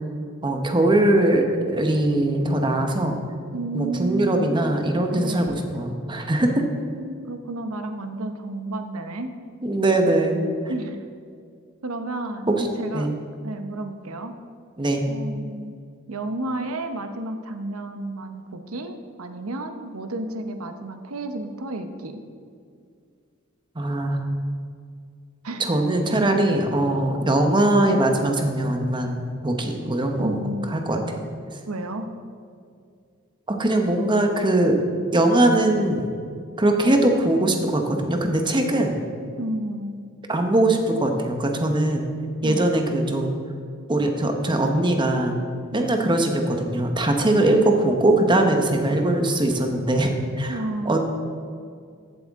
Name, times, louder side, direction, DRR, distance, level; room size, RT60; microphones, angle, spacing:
voice 1, 0.4-3.2 3.7-6.5 9.6-10.4 12.5-12.7 12.9-13.1 14.8-15.1 23.7-24.3 25.6-30.4 30.7-31.2 33.5-34.8 35.1-36.1 36.6-39.0 40.3-42.1 42.4-43.3 43.9-45.4 45.7-50.1 50.4-50.6 50.8-51.0, right 1 dB, 20° right, 4 dB, 1.0 m, -21 dB
voice 2, 3.5-4.6 5.2-5.6 6.4-9.3 10.7-11.0 11.8-12.5 12.8-13.1 13.4-14.4 15.1-15.7 16.1-22.2 25.4-25.7 30.2-30.7 31.7-32.1 39.4-40.0 42.4-42.7 45.7-45.9 50.5-51.0, right 2 dB, 85° right, 7 dB, 0.9 m, -31 dB
15.0 x 8.0 x 3.6 m, 2.2 s
head